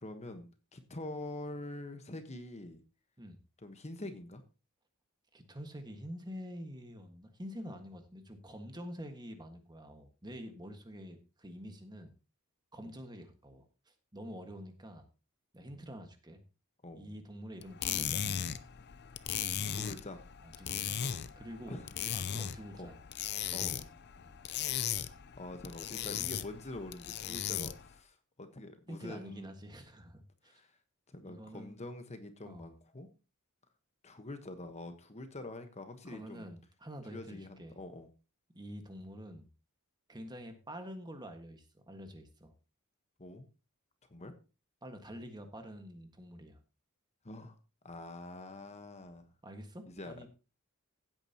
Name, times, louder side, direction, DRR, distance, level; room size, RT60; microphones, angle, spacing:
voice 1, 0.0-2.8 3.6-4.4 12.8-12.9 15.7-15.9 16.8-17.1 19.7-20.2 21.7-22.1 22.4-22.9 23.5-23.9 25.4-29.5 30.4-30.8 31.1-33.1 34.0-36.5 37.1-38.1 43.2-43.5 44.1-44.3 47.2-47.6 47.8-49.3 49.9-50.3, left 2 dB, 30° left, 8 dB, 1.2 m, -45 dB
voice 2, 5.3-12.1 12.7-15.0 15.5-16.4 16.9-18.4 20.4-21.0 21.3-21.8 22.1-23.0 24.2-24.3 28.9-30.6 31.2-31.7 32.4-32.7 36.0-37.8 38.5-39.5 40.1-42.5 44.8-46.6 49.4-50.3, equal, 20° right, 6 dB, 1.6 m, -47 dB
sound 1, 17.6-27.9, left 9 dB, 50° left, 0.6 m, -37 dB
16.0 x 8.9 x 2.9 m, 0.31 s
head